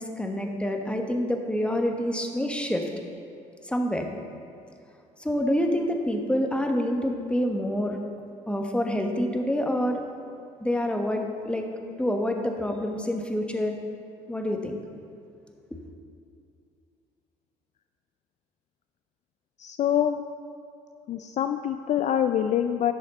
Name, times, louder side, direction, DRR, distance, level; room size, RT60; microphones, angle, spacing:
voice 1, 0.0-2.9 3.6-4.1 5.2-8.0 8.5-10.0 10.6-11.6 12.0-13.7 14.3-14.8, equal, 5° left, 3 dB, 1.2 m, -27 dB
voice 2, 19.6-20.2 21.1-22.9, left 10 dB, 50° left, 8 dB, 0.4 m, -25 dB
10.5 x 6.5 x 4.3 m, 2.4 s
supercardioid pair, 70°, 16 cm